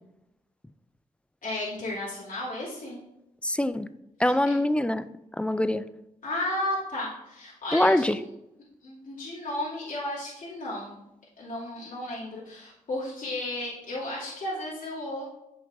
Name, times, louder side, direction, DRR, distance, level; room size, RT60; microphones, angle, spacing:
voice 1, 1.4-3.0 4.2-4.4 6.2-8.2 8.8-10.9 11.4-15.2, left 1 dB, 65° left, -8 dB, 2.7 m, -33 dB
voice 2, 3.4-3.9 4.2-5.0 5.4-5.8 7.7-8.2, left 1 dB, 10° left, 13 dB, 0.4 m, -23 dB
9.1 x 6.0 x 2.6 m, 0.86 s
cardioid pair, 60°, 15 cm